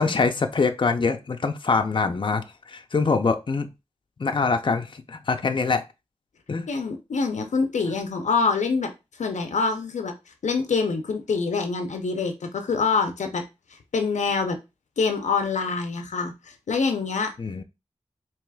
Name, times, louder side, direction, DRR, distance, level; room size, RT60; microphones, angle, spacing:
voice 1, 0.0-3.7 4.2-5.8 6.5-6.7 17.4-17.6, left 4 dB, 45° left, 0.5 m, -24 dB
voice 2, 6.7-8.9 9.2-10.1 10.4-13.4 13.9-14.6 15.0-17.3, left 4 dB, 90° left, 0.6 m, -25 dB
4.7 x 2.9 x 2.3 m
cardioid pair, 50°, 12 cm